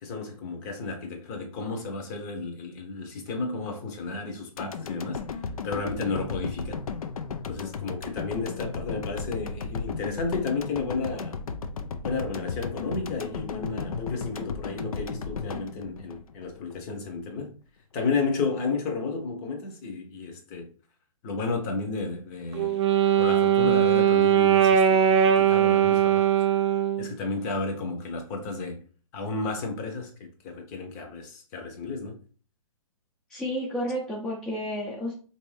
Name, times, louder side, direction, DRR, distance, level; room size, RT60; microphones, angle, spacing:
voice 1, 0.0-5.2 5.6-6.8 7.5-11.4 12.0-17.5 17.9-20.7 21.2-22.7 23.2-26.3 27.0-28.8 29.1-32.2, left 3 dB, 30° left, 0.8 m, -32 dB
sound 1, 4.6-16.8 17.2-17.3, left 5 dB, 80° left, 0.5 m, -35 dB
Wind instrument woodwind instrument, 22.5-27.1, right 9 dB, 55° right, 0.5 m, -20 dB
voice 2, 33.3-35.1, equal, 5° left, 0.5 m, -31 dB
3.2 x 2.7 x 3.2 m
hypercardioid pair, 135°, 18 cm